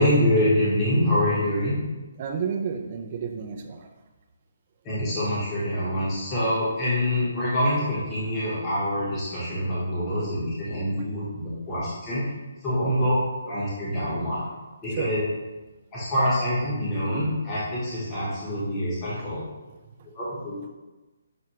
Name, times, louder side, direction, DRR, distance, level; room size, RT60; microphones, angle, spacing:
voice 1, 0.0-1.8 4.8-12.3 12.6-13.1 13.4-14.4 14.8-15.2 15.9-19.4 20.1-20.5, left 1 dB, 15° left, -10 dB, 0.9 m, -25 dB
voice 2, 2.2-3.9 12.9-13.1 15.0-15.1, right 6 dB, 30° right, 4 dB, 0.3 m, -31 dB
5.8 x 2.2 x 2.9 m, 1.1 s
hypercardioid pair, 165°, 0 cm